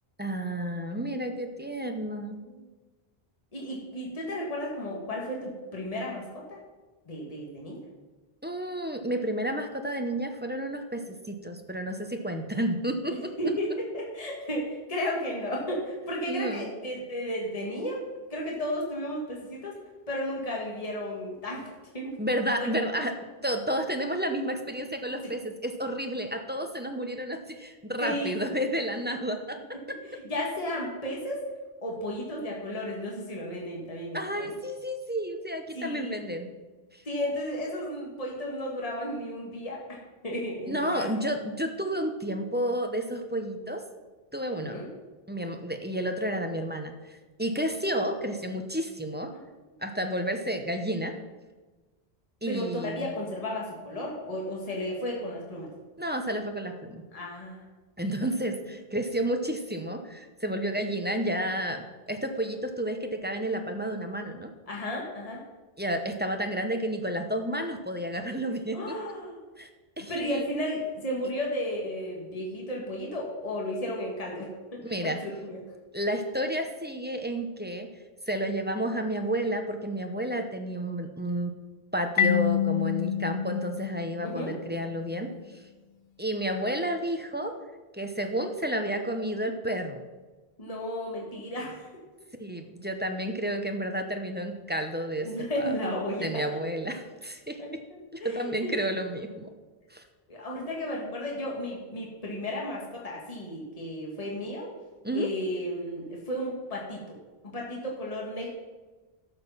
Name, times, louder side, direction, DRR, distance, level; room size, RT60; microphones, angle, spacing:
voice 1, 0.2-2.4 8.4-13.1 16.3-16.7 22.2-23.1 23.4-29.6 29.9-30.0 34.1-36.5 36.9-37.0 40.7-43.8 44.3-44.8 45.3-49.3 49.8-51.1 52.4-53.1 56.0-57.0 58.0-64.5 65.8-69.0 69.6-69.7 70.0-70.5 74.8-75.2 75.9-77.9 78.3-81.5 81.9-85.3 86.2-87.6 87.9-90.0 92.4-95.7 96.2-97.8 98.1-99.5 99.9-100.0 105.0-105.3, right 1 dB, 10° right, 5 dB, 0.8 m, -31 dB
voice 2, 3.5-6.6 7.1-7.8 13.4-18.0 18.3-19.8 20.1-21.7 21.9-22.1 22.6-22.7 28.0-28.3 30.3-31.4 31.8-34.5 35.7-36.1 37.1-39.8 40.2-41.1 44.6-44.9 52.5-55.7 57.1-57.6 64.7-65.4 68.7-69.4 70.0-75.6 84.2-84.5 90.6-91.9 95.2-96.3 97.6-98.8 100.3-104.7 105.1-107.2 107.4-108.5, left 1 dB, 35° left, -2 dB, 1.9 m, -33 dB
Marimba xylophone, 82.2-84.8, left 9 dB, 55° left, 0.5 m, -28 dB
12.0 x 6.5 x 5.7 m, 1.2 s
omnidirectional pair, 1.1 m